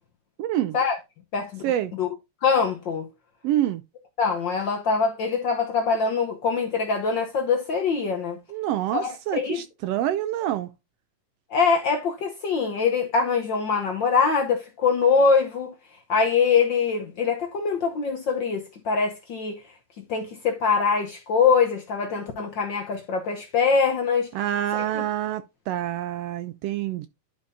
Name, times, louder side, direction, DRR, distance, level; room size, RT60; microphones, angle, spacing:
voice 1, 0.4-0.8 1.6-1.9 3.4-3.8 8.5-10.7 24.3-27.1, right 12 dB, 80° right, 1.4 m, -27 dB
voice 2, 1.3-1.6 1.9-2.1 2.4-3.1 4.2-8.4 8.9-9.6 11.5-15.7 16.1-19.6 20.1-24.3 24.8-25.0, left 5 dB, 75° left, 1.0 m, -23 dB
11.0 x 5.3 x 2.6 m
omnidirectional pair, 3.4 m